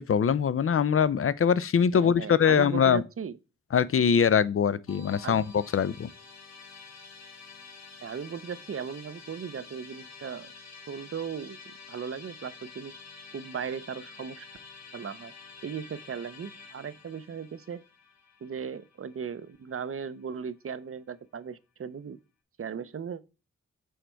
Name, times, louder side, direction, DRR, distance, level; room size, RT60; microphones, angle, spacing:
voice 1, 0.0-3.0 3.7-6.1, left 7 dB, 45° left, 0.5 m, -23 dB
voice 2, 1.9-3.4 5.2-5.4 8.0-10.5 10.9-12.9 13.3-14.5 14.9-15.3 15.6-17.8 18.4-22.2 22.6-23.2, right 7 dB, 45° right, 0.7 m, -37 dB
Musical instrument, 4.9-20.0, left 4 dB, 60° left, 1.3 m, -49 dB
6.4 x 3.3 x 4.5 m
cardioid pair, 45°, 31 cm